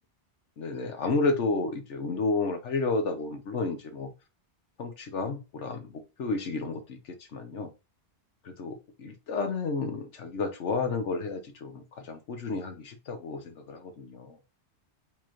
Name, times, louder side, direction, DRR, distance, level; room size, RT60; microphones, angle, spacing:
voice 1, 0.6-4.1 4.8-7.7 8.4-14.4, left 3 dB, 90° left, 6 dB, 1.3 m, -31 dB
4.7 x 3.8 x 3.0 m, 0.28 s
omnidirectional pair, 1.2 m